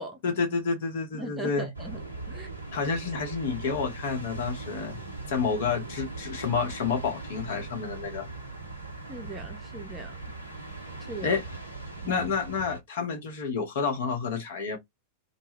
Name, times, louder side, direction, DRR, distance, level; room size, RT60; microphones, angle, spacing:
voice 1, 0.2-1.6 2.7-5.0 5.3-8.3 11.2-11.4 12.1-14.8, left 5 dB, 55° left, 0.8 m, -29 dB
voice 2, 1.1-2.0 2.3-2.5 9.1-10.2 11.0-11.4 12.0-12.3, right 1 dB, 10° right, 0.6 m, -39 dB
sound 1, 1.7-12.8, right 3 dB, 90° left, 0.7 m, -40 dB
2.2 x 2.0 x 3.2 m
figure-of-eight pair, 90°, 0 cm